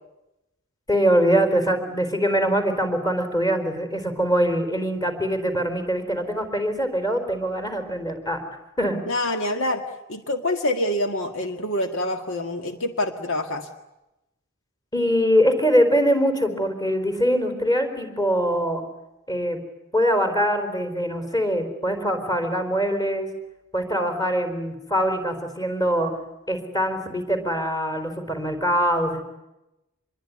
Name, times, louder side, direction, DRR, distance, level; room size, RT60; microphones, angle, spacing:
voice 1, 0.9-8.4 8.8-9.0 14.9-18.8 19.3-19.6 19.9-23.3 23.7-26.1 26.5-29.2, equal, 20° left, 6 dB, 4.3 m, -23 dB
voice 2, 9.1-9.8 10.1-13.7, left 1 dB, 65° left, 6 dB, 1.9 m, -26 dB
26.5 x 22.0 x 9.7 m, 0.94 s
head